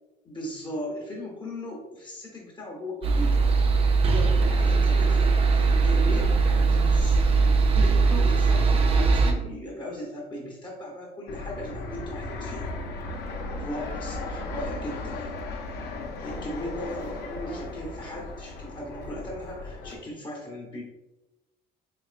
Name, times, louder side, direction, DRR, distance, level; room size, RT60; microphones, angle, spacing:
voice 1, 0.2-3.5 4.0-7.2 7.7-12.7 13.6-15.3 16.2-20.8, equal, 25° left, -2 dB, 0.9 m, -37 dB
sound 1, 3.0-9.3, right 4 dB, 35° right, 0.5 m, -20 dB
Fixed-wing aircraft airplane, 11.3-20.0, left 2 dB, 70° left, 0.7 m, -36 dB
4.1 x 2.9 x 2.4 m, 1.0 s
cardioid pair, 110°, 17 cm